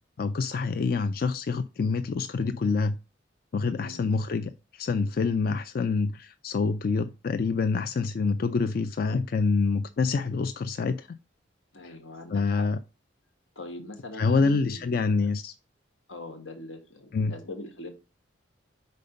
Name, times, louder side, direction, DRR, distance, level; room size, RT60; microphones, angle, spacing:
voice 1, 0.2-3.0 3.5-11.1 11.8-11.9 12.3-12.8 14.2-15.5 17.1-17.3, left 4 dB, 45° left, 0.3 m, -26 dB
voice 2, 3.7-4.1 11.7-12.7 13.5-15.3 16.1-17.9, left 2 dB, 85° left, 1.6 m, -42 dB
5.3 x 4.3 x 5.2 m
head